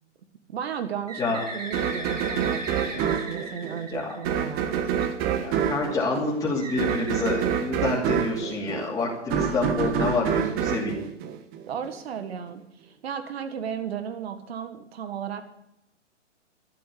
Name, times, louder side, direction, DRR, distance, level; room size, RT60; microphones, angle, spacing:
voice 1, 0.5-5.4 11.7-12.6 13.0-15.4, right 8 dB, 55° right, 9 dB, 1.6 m, -35 dB
Bird, 1.1-4.8 6.6-8.3, right 1 dB, 85° right, 3.8 m, -38 dB
sound 1, 1.7-11.9, right 8 dB, 25° right, 1.4 m, -27 dB
voice 2, 5.4-11.0, left 3 dB, 10° left, -6 dB, 2.7 m, -27 dB
12.0 x 9.6 x 8.5 m, 0.82 s
hypercardioid pair, 125°, 37 cm